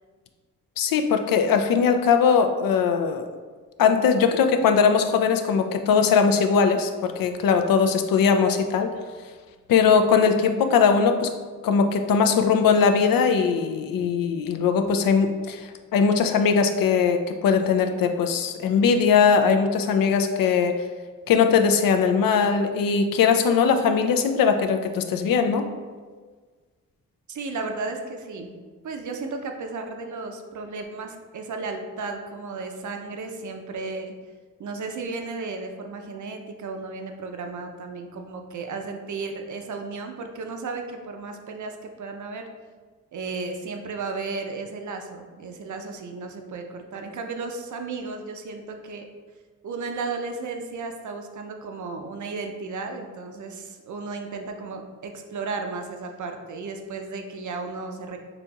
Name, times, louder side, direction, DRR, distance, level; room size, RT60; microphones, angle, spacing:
voice 1, 0.8-3.2 3.8-8.9 9.7-11.3 11.6-20.7 21.3-25.6, left 6 dB, 65° left, 6 dB, 0.5 m, -20 dB
voice 2, 27.3-28.5 28.8-34.1 34.6-42.4 43.1-49.0 49.6-58.2, right 3 dB, 50° right, 4 dB, 0.6 m, -34 dB
4.1 x 2.9 x 2.3 m, 1.5 s
supercardioid pair, 45°, 37 cm